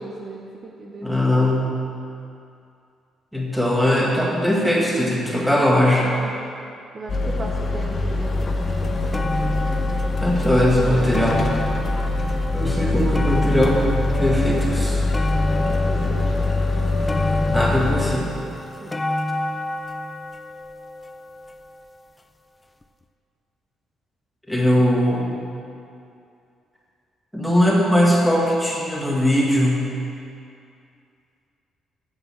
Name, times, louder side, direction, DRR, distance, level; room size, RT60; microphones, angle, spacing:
voice 1, 0.0-1.7 6.2-6.4 6.9-9.5 11.7-11.9 15.5-16.5 18.8-18.9, right 3 dB, 35° right, -1 dB, 0.9 m, -38 dB
voice 2, 1.0-1.8 3.3-6.1 10.2-11.5 12.5-15.0 17.5-18.3 24.5-25.3 27.3-29.9, left 1 dB, ahead, -4 dB, 1.7 m, -20 dB
sound 1, 7.1-18.2, left 2 dB, 35° left, 1.0 m, -23 dB
sound 2, 8.4-8.5 8.8-22.0 22.8-22.9, left 1 dB, 15° left, 0.4 m, -30 dB
8.3 x 7.1 x 7.2 m, 2.5 s
cardioid pair, 140°, 0 cm